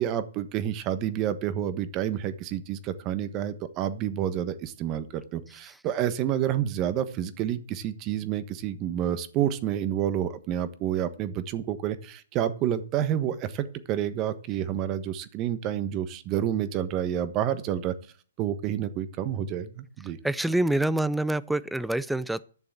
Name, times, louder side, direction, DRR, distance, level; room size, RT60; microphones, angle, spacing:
voice 1, 0.0-17.9 18.4-20.2, right 10 dB, 30° right, 1.2 m, -29 dB
voice 2, 20.2-22.4, right 1 dB, 5° right, 0.5 m, -26 dB
11.0 x 6.9 x 8.0 m
hypercardioid pair, 135°, 0 cm